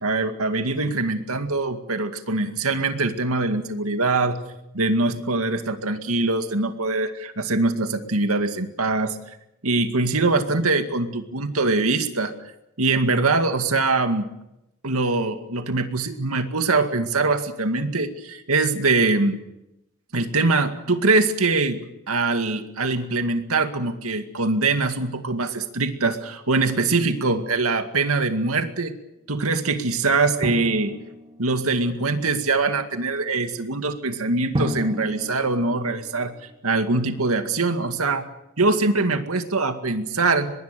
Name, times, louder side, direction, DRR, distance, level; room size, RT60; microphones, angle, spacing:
voice 1, 0.0-4.4 4.7-9.2 9.6-12.3 12.8-14.3 14.8-19.4 20.1-21.8 22.1-29.0 29.3-30.9 31.4-36.3 36.6-38.3 38.6-40.5, right 3 dB, 80° right, 7 dB, 2.1 m, -23 dB
Drum, 30.4-31.9 34.5-36.7, equal, 25° right, 2.4 m, -31 dB
24.0 x 21.5 x 6.8 m, 0.86 s
head